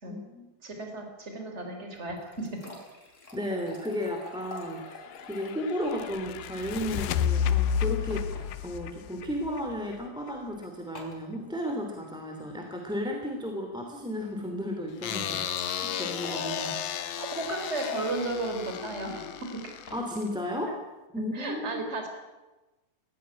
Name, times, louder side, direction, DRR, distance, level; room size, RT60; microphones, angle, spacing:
voice 1, 0.0-0.5 3.3-8.3 8.6-16.7 19.9-20.8 21.1-21.8, equal, ahead, 2 dB, 2.2 m, -34 dB
voice 2, 0.6-2.7 17.2-19.8 21.3-22.1, right 2 dB, 20° right, 4 dB, 3.8 m, -34 dB
sound 1, 1.9-5.7 6.0-6.1 6.3-6.4 8.1-8.5 9.4-9.6 11.0-11.2 15.0-18.1 19.6-20.0, left 3 dB, 20° left, 4.2 m, -44 dB
sound 2, 4.5-10.3, left 8 dB, 85° left, 2.5 m, -31 dB
sound 3, 15.0-20.3, left 10 dB, 65° left, 1.9 m, -35 dB
17.5 x 16.0 x 9.7 m, 1.1 s
omnidirectional pair, 3.6 m